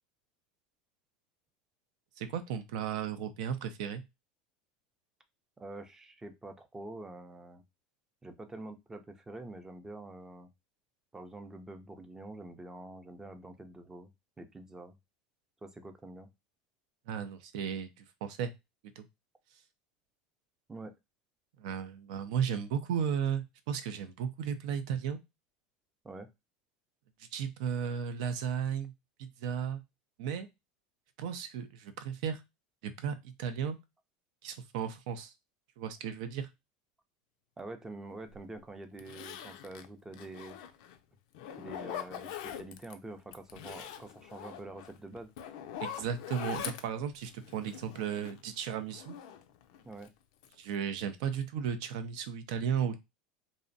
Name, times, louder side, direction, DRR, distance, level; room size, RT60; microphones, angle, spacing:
voice 1, 2.2-4.0 17.1-18.5 19.0-19.1 21.6-25.2 27.3-28.9 29.2-29.8 30.2-30.5 31.2-32.4 32.8-33.8 34.4-35.3 35.8-36.5 45.8-49.2 50.6-53.0, right 8 dB, 75° right, 10 dB, 0.4 m, -35 dB
voice 2, 5.6-7.6 8.2-10.5 11.1-14.1 14.4-15.0 15.6-16.3 20.7-20.9 26.0-26.3 37.6-40.6 41.6-45.3 49.8-50.1, right 2 dB, 15° right, 8 dB, 0.4 m, -46 dB
Zipper (clothing), 38.3-38.4 39.0-41.0 41.3-42.9 43.3-48.5 48.9-50.1 50.4-50.9 51.2-51.4, left 9 dB, 75° left, 0.3 m, -43 dB
2.6 x 2.0 x 2.6 m, 0.22 s
supercardioid pair, 105°, 4 cm